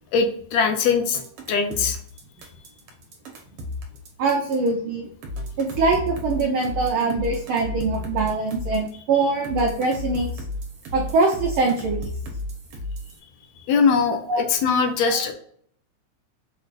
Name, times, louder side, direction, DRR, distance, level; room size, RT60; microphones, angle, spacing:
voice 1, 0.1-1.2 1.5-2.0 13.6-15.3, left 5 dB, 80° left, 6 dB, 1.8 m, -21 dB
sound 1, 1.1-4.7 5.2-8.9 9.4-13.2, left 1 dB, 60° right, 1.8 m, -33 dB
voice 2, 4.2-5.1 5.6-10.3 10.9-12.1 14.3-14.5 15.1-15.2, right 3 dB, 90° right, 0 dB, 1.2 m, -23 dB
6.2 x 3.2 x 2.5 m, 0.62 s
omnidirectional pair, 3.4 m